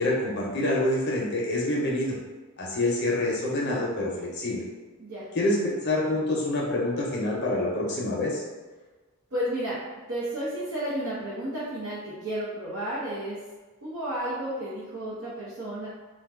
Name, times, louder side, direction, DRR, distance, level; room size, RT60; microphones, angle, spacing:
voice 1, 0.0-2.2 2.6-4.6 5.3-8.4, left 1 dB, 50° left, -3 dB, 0.5 m, -26 dB
voice 2, 9.3-9.8 10.1-13.4 13.8-15.9, right 1 dB, 80° right, -10 dB, 0.8 m, -32 dB
2.5 x 2.2 x 3.5 m, 1.3 s
head